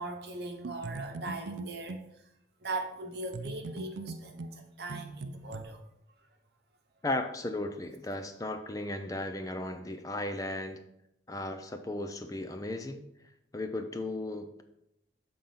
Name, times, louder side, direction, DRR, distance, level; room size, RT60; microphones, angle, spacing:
voice 1, 0.0-2.0 2.6-5.8, right 2 dB, 60° right, 3 dB, 1.0 m, -39 dB
sound 1, 0.6-2.1 3.3-5.6, right 3 dB, 85° right, 0.5 m, -41 dB
voice 2, 7.0-10.8 11.3-13.0 13.5-14.6, left 2 dB, 20° left, 7 dB, 0.4 m, -35 dB
7.1 x 3.9 x 5.6 m, 0.81 s
head